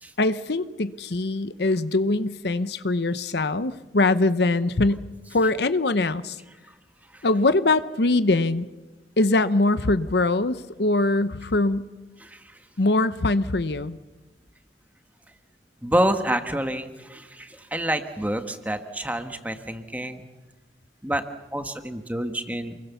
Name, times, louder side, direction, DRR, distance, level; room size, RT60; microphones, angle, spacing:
voice 1, 0.2-5.0 5.3-6.4 7.2-8.7 9.2-11.9 12.8-14.0, left 2 dB, 65° left, 13 dB, 0.8 m, -22 dB
voice 2, 12.2-12.6 15.8-20.2 21.0-21.2 21.5-22.8, right 1 dB, 10° right, 7 dB, 1.4 m, -28 dB
28.5 x 22.0 x 7.0 m, 1.1 s
head